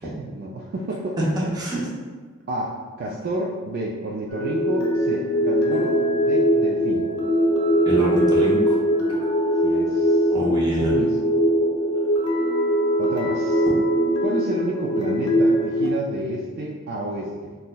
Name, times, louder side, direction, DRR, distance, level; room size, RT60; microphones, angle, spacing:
voice 1, 0.0-1.2 2.5-7.1 9.6-10.3 10.8-11.4 13.0-13.6 14.2-17.6, right 1 dB, 45° right, -2 dB, 0.3 m, -30 dB
voice 2, 1.2-1.9 7.8-8.8 10.3-10.9, right 1 dB, 20° right, -6 dB, 0.7 m, -24 dB
sound 1, 4.3-15.9, equal, 70° left, 0.6 m, -21 dB
5.4 x 2.0 x 2.2 m, 1.5 s
head